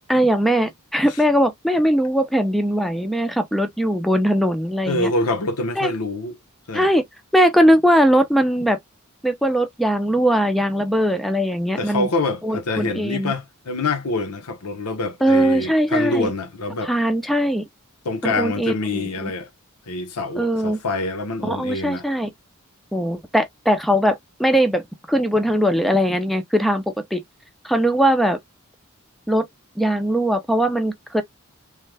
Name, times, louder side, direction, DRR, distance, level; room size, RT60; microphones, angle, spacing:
voice 1, 0.1-5.1 5.8-5.9 6.7-7.0 7.3-8.8 9.2-12.1 12.4-13.3 15.2-16.3 16.8-17.6 18.2-19.3 20.4-20.8 21.4-22.3 22.9-27.2 27.6-28.4 29.3-29.5 29.8-31.2, equal, ahead, 0.4 m, -20 dB
voice 2, 4.8-6.3 6.7-6.9 11.8-16.9 18.0-19.5 19.9-22.1, left 2 dB, 90° left, 0.8 m, -25 dB
3.2 x 2.1 x 3.2 m
head